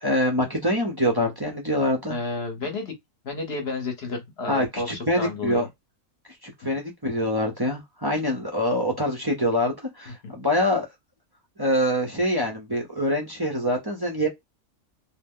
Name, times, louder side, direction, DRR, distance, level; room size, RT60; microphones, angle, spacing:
voice 1, 0.0-2.2 4.5-5.7 6.4-10.9 11.6-14.3, equal, 25° right, 0.5 m, -25 dB
voice 2, 2.1-2.9 3.2-5.7 10.1-10.3, left 3 dB, 50° left, 1.0 m, -31 dB
2.7 x 2.1 x 3.6 m
omnidirectional pair, 1.5 m